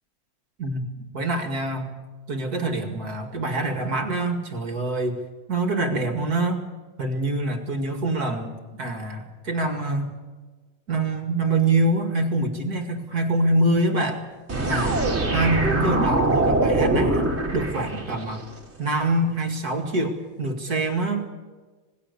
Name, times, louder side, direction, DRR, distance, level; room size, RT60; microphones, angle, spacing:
voice 1, 1.1-1.9 2.3-5.2 5.5-6.6 7.0-8.5 8.8-10.1 10.9-14.2 14.6-15.0 15.3-18.4 18.8-21.3, right 2 dB, 45° right, 6 dB, 2.6 m, -25 dB
sound 1, 14.5-18.4, right 2 dB, 30° right, 3.0 m, -23 dB
26.5 x 20.0 x 6.8 m, 1.4 s
omnidirectional pair, 2.3 m